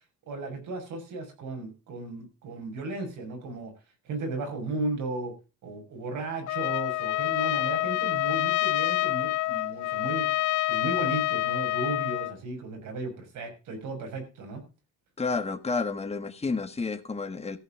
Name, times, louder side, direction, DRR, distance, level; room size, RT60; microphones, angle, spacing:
voice 1, 0.3-3.7 4.0-5.3 5.6-10.3 10.7-14.6, right 2 dB, 80° right, 6.3 m, -35 dB
Trumpet, 6.5-12.3, left 18 dB, 80° left, 0.6 m, -27 dB
voice 2, 15.2-17.6, left 4 dB, 20° left, 1.6 m, -30 dB
14.5 x 6.1 x 7.7 m
cardioid pair, 90°, 30 cm